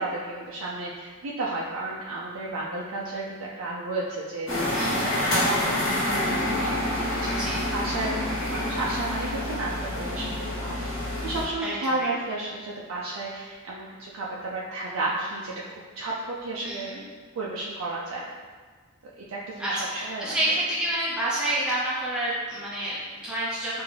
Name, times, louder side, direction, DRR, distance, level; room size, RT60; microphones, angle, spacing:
voice 1, 0.0-4.5 4.9-8.2 8.5-15.5 16.0-17.0 17.3-18.3 19.0-20.4, right 2 dB, 85° right, -5 dB, 0.4 m, -32 dB
sound 1, 4.5-11.4, left 1 dB, 75° left, 1.2 m, -27 dB
voice 2, 4.7-5.1 7.3-7.6 11.6-12.1 16.6-17.0 19.6-23.8, right 1 dB, 5° right, -8 dB, 0.5 m, -29 dB
3.5 x 2.5 x 3.2 m, 1.5 s
head